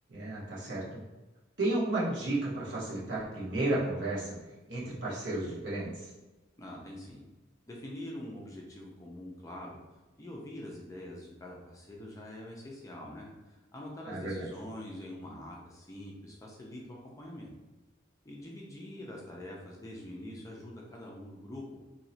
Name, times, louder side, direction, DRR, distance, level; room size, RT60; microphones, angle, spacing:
voice 1, 0.1-1.0 1.6-4.3 4.7-6.1 14.1-14.5, right 2 dB, 65° right, -7 dB, 1.2 m, -33 dB
voice 2, 6.6-7.2 7.7-9.8 10.2-17.5 18.2-21.9, left 1 dB, 15° left, -2 dB, 0.4 m, -44 dB
3.0 x 2.8 x 2.7 m, 1.1 s
head